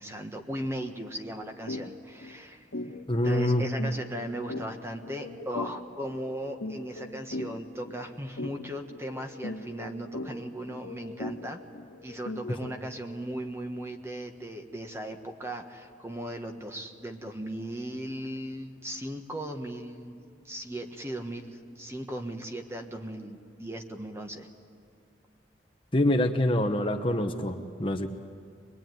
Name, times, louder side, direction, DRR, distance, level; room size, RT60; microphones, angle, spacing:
voice 1, 0.0-2.7 3.2-11.6 12.0-20.2 20.4-24.5, right 1 dB, 15° right, 4 dB, 1.4 m, -37 dB
sound 1, 1.7-1.9 2.2-2.3 2.7-13.0, left 2 dB, 90° left, 1.8 m, -40 dB
voice 2, 3.1-3.7 25.9-28.1, left 1 dB, 30° left, 5 dB, 1.0 m, -25 dB
23.0 x 22.0 x 9.3 m, 2.3 s
head